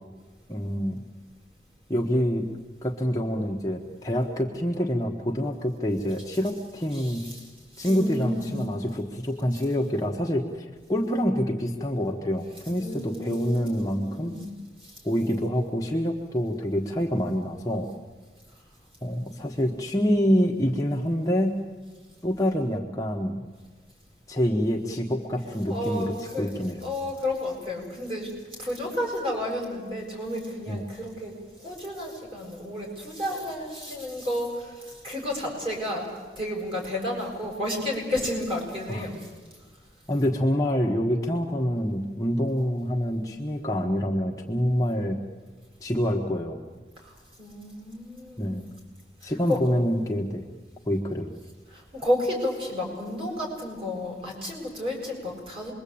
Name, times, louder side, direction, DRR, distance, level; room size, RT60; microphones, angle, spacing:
voice 1, 0.5-1.0 1.9-2.5 2.8-7.2 7.8-14.3 15.0-17.9 19.0-21.6 22.2-23.5 24.3-26.9 30.7-30.8 38.9-39.1 40.1-45.2 45.8-46.6 48.4-48.6 49.2-50.5 50.9-51.3, equal, 20° left, 0 dB, 1.3 m, -26 dB
voice 2, 6.9-7.4 7.7-8.7 12.8-14.6 14.8-15.0 25.5-26.5 26.8-28.3 28.6-39.3 47.0-48.6 49.2-49.7 51.7-55.7, left 1 dB, 30° right, -1 dB, 7.4 m, -32 dB
26.5 x 22.0 x 8.7 m, 1.4 s
head